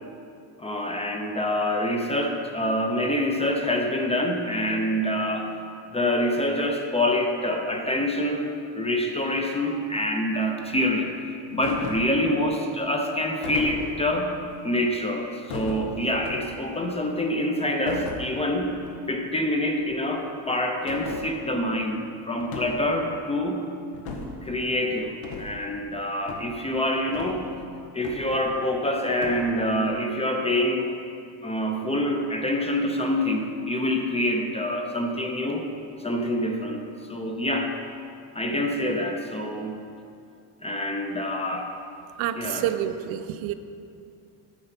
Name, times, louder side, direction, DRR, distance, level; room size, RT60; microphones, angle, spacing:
voice 1, 0.6-5.5 5.9-8.5 8.7-11.2 11.5-14.3 14.6-18.7 19.1-23.6 24.4-27.4 27.9-30.9 31.4-35.7 36.0-37.7 38.3-39.8 40.6-41.7 42.3-42.7, left 1 dB, 15° left, 3 dB, 0.5 m, -26 dB
sound 1, 11.6-12.2 13.4-14.2 15.5-16.7 17.9-18.3 18.7-18.9 19.2-19.3 19.8-19.9 20.9-21.2 22.4-22.9 23.9-24.4 25.2-25.5 26.3-26.5 27.1-27.6 28.0-28.8 29.2-29.4, left 3 dB, 85° left, 1.5 m, -36 dB
voice 2, 42.2-43.5, right 11 dB, 75° right, 10 dB, 0.7 m, -28 dB
9.9 x 6.9 x 5.8 m, 2.5 s
cardioid pair, 160°, 48 cm